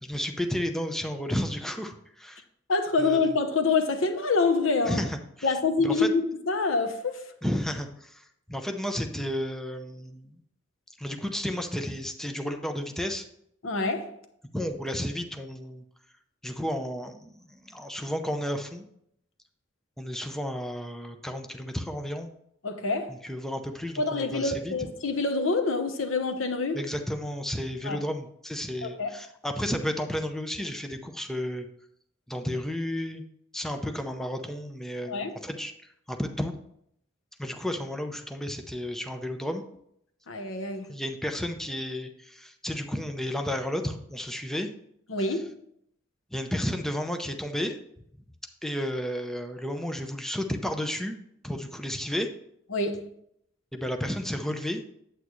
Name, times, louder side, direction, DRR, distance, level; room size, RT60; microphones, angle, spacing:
voice 1, 0.0-2.4 3.0-3.2 4.9-5.5 5.8-6.1 7.4-10.4 11.0-13.2 14.5-15.8 16.4-18.9 20.0-22.3 23.1-24.7 26.7-31.7 32.3-33.2 33.5-35.7 36.1-36.5 37.4-39.6 40.9-44.7 45.3-45.4 46.3-47.8 48.6-51.2 51.4-52.3 53.7-54.8, equal, ahead, 0.6 m, -32 dB
voice 2, 2.7-5.0 5.4-7.2 13.6-14.1 22.6-23.1 24.0-26.8 27.8-28.0 28.8-29.1 35.0-35.4 40.3-40.9 45.1-45.6 52.7-53.1, left 3 dB, 80° left, 0.9 m, -26 dB
8.3 x 8.1 x 3.1 m
head